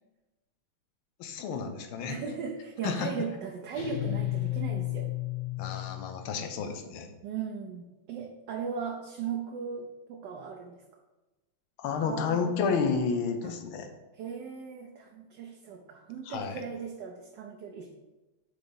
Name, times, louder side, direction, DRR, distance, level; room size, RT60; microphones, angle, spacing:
voice 1, 1.2-2.2 2.8-3.1 5.6-7.1 11.8-13.9 16.3-16.6, left 5 dB, 80° left, 6 dB, 1.6 m, -31 dB
voice 2, 2.1-5.1 7.2-10.7 11.9-12.6 13.4-13.5 14.1-17.9, right 6 dB, 70° right, 1 dB, 1.1 m, -37 dB
sound 1, 3.7-6.3, left 17 dB, 50° left, 1.6 m, -33 dB
5.0 x 4.0 x 5.3 m, 1.1 s
omnidirectional pair, 2.3 m